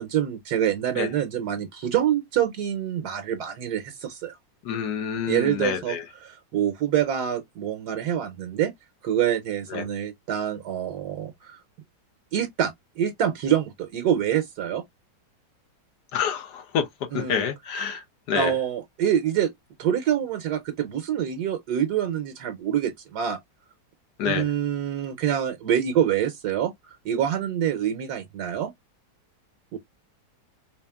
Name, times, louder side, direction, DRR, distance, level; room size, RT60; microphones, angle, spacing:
voice 1, 0.0-4.4 5.3-8.7 9.0-11.6 12.3-14.8 17.1-17.5 18.3-19.5 19.8-23.4 24.2-26.7 27.0-28.7 29.7-29.8, right 10 dB, 70° right, 1.2 m, -26 dB
voice 2, 4.6-6.0 9.7-9.8 16.1-16.9 17.1-18.0 18.3-18.5 24.2-24.5, left 7 dB, 70° left, 1.4 m, -27 dB
4.0 x 3.5 x 2.2 m
omnidirectional pair, 1.9 m